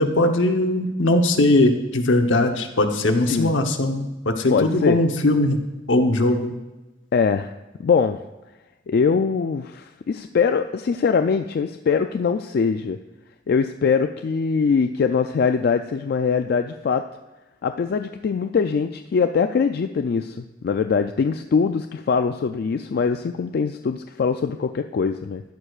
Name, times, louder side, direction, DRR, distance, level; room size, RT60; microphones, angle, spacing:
voice 1, 0.0-5.6 5.9-6.5, left 1 dB, 75° left, 5 dB, 0.9 m, -20 dB
voice 2, 4.5-5.0 7.1-7.5 7.8-8.2 8.9-13.0 13.5-17.0 17.6-25.4, left 5 dB, 55° left, 7 dB, 0.3 m, -22 dB
13.5 x 11.0 x 2.4 m, 1.1 s
head